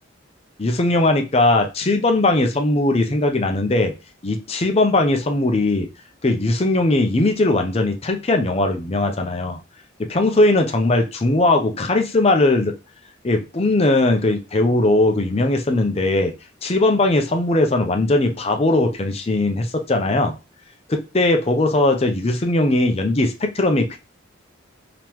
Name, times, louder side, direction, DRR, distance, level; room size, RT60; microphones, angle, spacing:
voice 1, 0.6-3.9 4.2-5.9 6.2-9.6 10.0-12.7 13.2-16.3 16.6-20.3 20.9-24.0, left 2 dB, 30° left, 4 dB, 0.5 m, -19 dB
3.6 x 2.9 x 3.0 m, 0.28 s
head